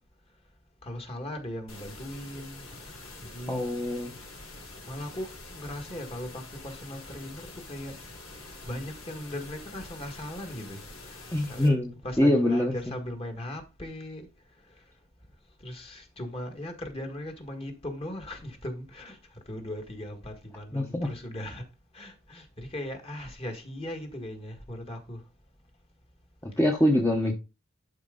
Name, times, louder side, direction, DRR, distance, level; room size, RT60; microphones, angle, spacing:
voice 1, 0.8-3.6 4.9-8.0 8.5-11.2 11.5-14.3 15.6-19.2 19.5-21.6 21.9-25.2 27.1-27.3, left 1 dB, 25° left, 1.8 m, -38 dB
sound 1, 1.7-11.7, left 2 dB, 80° left, 3.9 m, -46 dB
voice 2, 3.5-4.2 11.3-11.9 12.2-12.7 20.7-21.1 26.4-27.3, left 1 dB, 10° left, 1.0 m, -24 dB
11.5 x 4.5 x 3.8 m
head